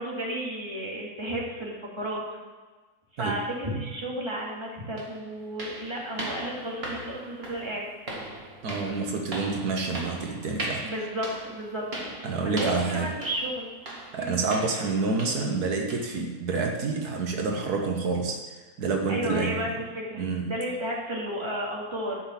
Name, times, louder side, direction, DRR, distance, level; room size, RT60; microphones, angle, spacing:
voice 1, 0.0-2.4 3.1-7.9 10.8-11.9 12.4-13.7 14.2-14.4 19.1-22.2, right 1 dB, 15° right, -3 dB, 2.3 m, -33 dB
sound 1, 4.4-4.5 5.0-15.6 15.9-16.2 16.6-16.7 17.2-17.3 17.9-18.0, right 1 dB, 40° right, 2.0 m, -39 dB
voice 2, 8.6-10.9 12.2-13.1 14.1-19.7 20.2-20.5, right 4 dB, 75° right, 2 dB, 1.6 m, -28 dB
11.5 x 5.8 x 7.2 m, 1.4 s
omnidirectional pair, 1.7 m